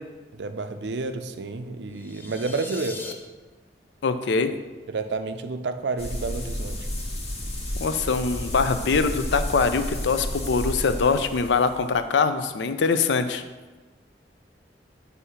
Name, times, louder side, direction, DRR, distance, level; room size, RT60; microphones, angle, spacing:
voice 1, 0.3-3.0 4.9-6.9, right 3 dB, 80° right, 9 dB, 0.5 m, -30 dB
sound 1, 1.9-3.1, left 3 dB, 10° left, 0.4 m, -39 dB
voice 2, 4.0-4.5 7.8-13.4, left 4 dB, 85° left, 10 dB, 0.5 m, -23 dB
sound 2, 6.0-12.0, left 1 dB, 35° left, 1.1 m, -32 dB
8.1 x 2.8 x 5.6 m, 1.2 s
head